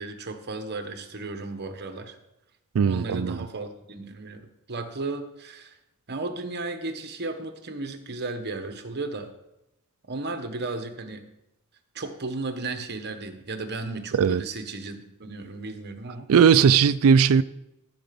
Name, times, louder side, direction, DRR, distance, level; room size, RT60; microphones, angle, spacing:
voice 1, 0.0-2.2 2.8-5.8 6.1-9.3 10.1-11.2 11.9-16.3, right 3 dB, 50° right, 1.2 m, -34 dB
voice 2, 2.8-3.4 14.1-14.4 16.3-17.4, right 6 dB, 65° right, 0.4 m, -18 dB
14.0 x 5.0 x 6.9 m
head